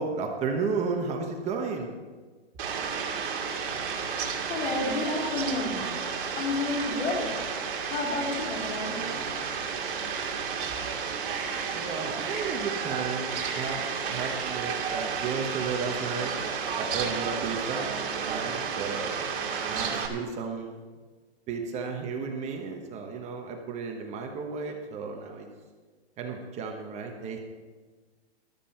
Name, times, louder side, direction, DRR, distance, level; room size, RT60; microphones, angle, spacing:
voice 1, 0.0-1.9 11.7-13.8 14.1-16.3 16.8-17.9 18.2-19.1 19.7-20.7 21.5-25.5 26.2-27.4, right 5 dB, 20° right, 3 dB, 1.1 m, -33 dB
Fowl, 2.6-20.1, right 6 dB, 50° right, 2.3 m, -32 dB
voice 2, 4.4-6.0 6.4-7.4 7.9-9.1, left 3 dB, 65° left, 0 dB, 3.7 m, -30 dB
13.5 x 12.5 x 4.4 m, 1.4 s
hypercardioid pair, 145°, 34 cm